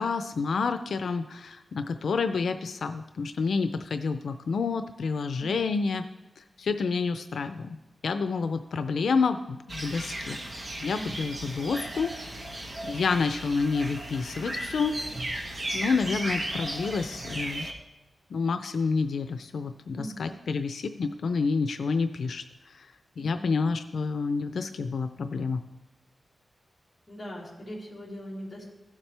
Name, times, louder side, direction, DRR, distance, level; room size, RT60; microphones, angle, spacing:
voice 1, 0.0-6.0 6.4-7.8 8.0-10.4 10.8-12.4 12.8-14.9 15.7-17.7 18.3-22.4 22.7-22.9 23.2-25.6, left 4 dB, 90° left, 9 dB, 0.5 m, -29 dB
voice 2, 5.4-5.8 10.9-11.3 19.9-20.4 23.2-23.7 27.1-28.6, equal, 20° left, -5 dB, 3.2 m, -41 dB
sound 1, 9.7-17.7, right 1 dB, 35° right, 1.2 m, -35 dB
16.0 x 7.3 x 3.4 m, 1.1 s
wide cardioid pair, 150°, 0 cm